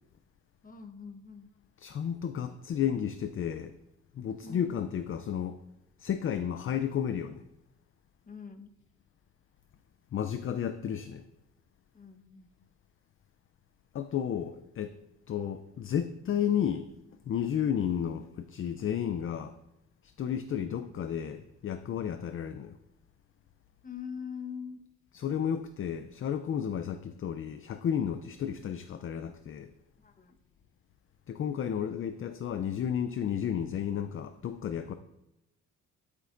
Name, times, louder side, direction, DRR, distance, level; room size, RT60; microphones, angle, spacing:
voice 1, 0.6-1.5 4.4-4.8 8.3-8.7 11.9-12.5 23.8-24.8 30.0-30.4, left 6 dB, 30° left, 1.1 m, -43 dB
voice 2, 1.8-3.8 4.2-5.6 6.0-7.4 10.1-11.2 13.9-15.0 15.3-16.9 17.3-19.5 20.0-22.8 25.1-29.7 31.3-34.9, left 9 dB, 45° left, 0.5 m, -32 dB
10.5 x 8.2 x 2.6 m
cardioid pair, 90°, 30 cm